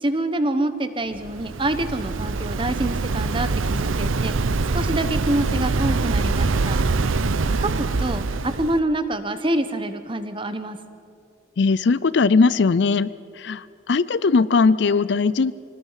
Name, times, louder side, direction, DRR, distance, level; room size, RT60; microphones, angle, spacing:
voice 1, 0.0-4.4 4.7-6.8 7.6-10.8, right 1 dB, 25° right, 10 dB, 1.0 m, -26 dB
Waves surf, 1.1-8.8, right 3 dB, 90° right, 0.7 m, -24 dB
voice 2, 11.6-13.1 13.4-15.5, left 4 dB, 60° left, 17 dB, 0.4 m, -19 dB
25.0 x 19.0 x 5.7 m, 2.5 s
head